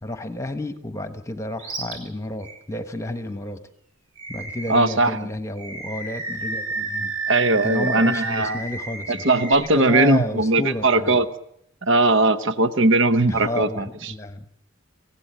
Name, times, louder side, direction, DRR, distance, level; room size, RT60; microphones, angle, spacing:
voice 1, 0.0-3.6 4.3-7.1 7.6-9.2 9.6-11.1 13.3-14.4, left 1 dB, 15° left, 10 dB, 1.2 m, -31 dB
Animal, 1.6-2.0 2.4-2.6 4.2-4.9 5.6-9.5, right 3 dB, 80° right, 7.3 m, -31 dB
voice 2, 4.7-5.2 7.3-8.6 9.1-11.3 11.8-14.1, right 2 dB, 55° right, 12 dB, 0.9 m, -19 dB
26.0 x 16.5 x 9.1 m, 0.74 s
head